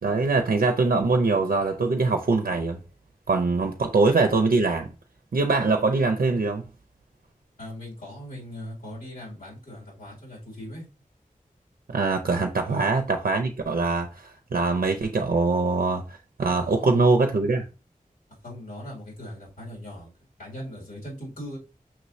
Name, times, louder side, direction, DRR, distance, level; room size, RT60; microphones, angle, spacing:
voice 1, 0.0-2.8 3.3-4.9 5.3-6.6 11.9-17.6, right 3 dB, 85° right, 0.5 m, -23 dB
voice 2, 7.6-10.9 12.6-12.9 16.6-17.1 18.4-20.1 20.4-21.6, left 1 dB, 90° left, 2.3 m, -40 dB
5.9 x 3.1 x 2.6 m
wide cardioid pair, 55°, 15 cm